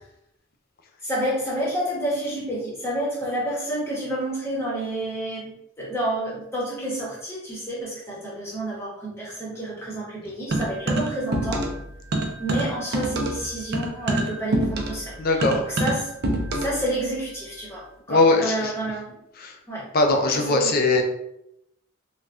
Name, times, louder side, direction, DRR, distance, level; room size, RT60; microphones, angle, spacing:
voice 1, 1.0-11.7 12.4-16.1 16.6-19.2 19.7-19.9 20.3-20.7, right 1 dB, 10° left, -6 dB, 0.9 m, -29 dB
sound 1, 10.5-11.8 12.1-16.8, right 1 dB, 50° right, 0.4 m, -26 dB
voice 2, 15.2-15.6 18.1-18.7 19.4-19.5 19.9-21.0, left 2 dB, 45° left, 4 dB, 0.4 m, -20 dB
3.4 x 2.2 x 2.5 m, 0.81 s
head